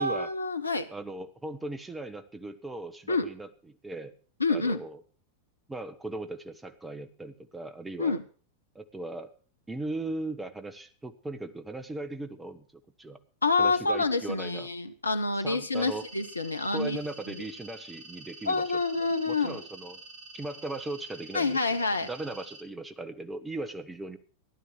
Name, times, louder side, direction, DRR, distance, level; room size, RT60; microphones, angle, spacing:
voice 1, 0.0-0.9 3.1-3.3 4.4-4.8 8.0-8.2 13.4-17.0 17.3-17.4 18.5-19.6 21.3-22.1, left 3 dB, 80° left, 10 dB, 1.2 m, -27 dB
voice 2, 0.9-4.1 4.5-5.0 5.7-8.2 8.7-9.3 9.7-12.6 13.0-13.2 13.6-14.7 15.4-16.1 16.7-20.0 20.3-21.7 22.0-24.2, right 2 dB, 10° right, 10 dB, 1.4 m, -38 dB
sound 1, 15.7-22.6, right 3 dB, 35° right, 2.1 m, -48 dB
15.0 x 11.5 x 6.2 m, 0.40 s
figure-of-eight pair, 90°, 0 cm